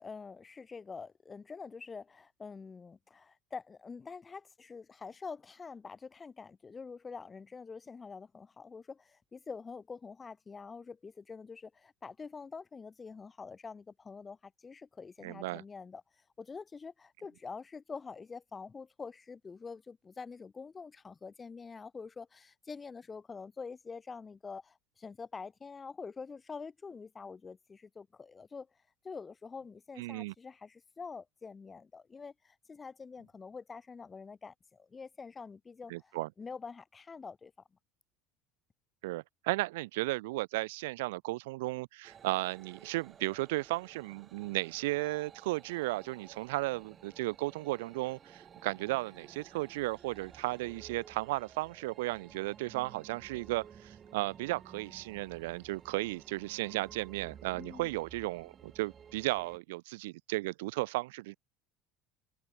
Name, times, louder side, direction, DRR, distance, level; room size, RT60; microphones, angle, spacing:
voice 1, 0.0-28.7 29.0-37.5 57.6-57.9, left 5 dB, 25° left, 2.4 m, -46 dB
voice 2, 15.2-15.6 30.0-30.3 35.9-36.3 39.0-61.4, right 20 dB, 75° right, 0.4 m, -35 dB
sound 1, 42.0-59.6, right 7 dB, 35° right, 6.7 m, -55 dB
hypercardioid pair, 75°, 0 cm